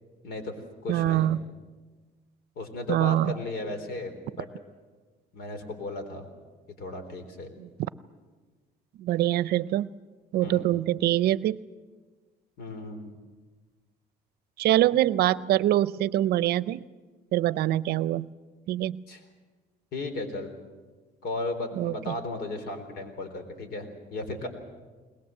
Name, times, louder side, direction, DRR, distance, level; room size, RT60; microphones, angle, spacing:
voice 1, 0.2-0.6 0.8-1.3 2.6-4.5 5.3-6.3 6.8-7.5 10.4-10.7 12.6-13.1 19.1-19.2 19.9-20.5 21.2-24.5, left 2 dB, 70° left, 7 dB, 3.8 m, -35 dB
voice 2, 0.9-1.4 2.9-3.3 9.0-9.9 10.3-11.6 14.6-16.8 17.3-18.3 18.7-19.0 21.8-22.1, right 13 dB, 70° right, 18 dB, 0.6 m, -24 dB
21.0 x 21.0 x 7.6 m, 1.4 s
cardioid pair, 110°, 17 cm